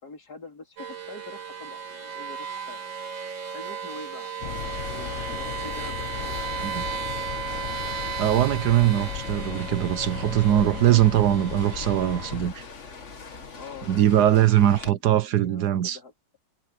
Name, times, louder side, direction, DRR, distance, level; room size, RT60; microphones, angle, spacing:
voice 1, 0.0-2.9 3.2-6.8 13.5-16.1, left 3 dB, 60° left, 4.1 m, -45 dB
sound 1, 0.8-12.4, right 6 dB, 85° right, 3.2 m, -35 dB
sound 2, 4.4-12.5, left 12 dB, 75° left, 0.7 m, -36 dB
sound 3, 4.5-14.9, left 4 dB, 40° left, 1.9 m, -43 dB
voice 2, 8.2-12.6 13.9-16.0, right 12 dB, 70° right, 1.3 m, -21 dB
omnidirectional pair, 2.0 m